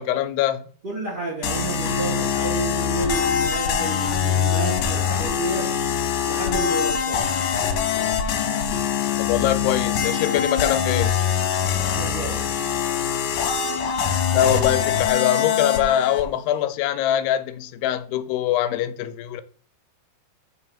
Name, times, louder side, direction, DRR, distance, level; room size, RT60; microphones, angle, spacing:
voice 1, 0.0-0.7 9.2-11.2 14.3-19.4, left 11 dB, 85° left, 2.7 m, -23 dB
voice 2, 0.8-5.7 6.3-7.3 11.8-12.5, right 4 dB, 35° right, 0.7 m, -31 dB
sound 1, 1.4-16.2, left 7 dB, 70° left, 2.0 m, -23 dB
7.7 x 3.6 x 5.6 m
omnidirectional pair, 4.6 m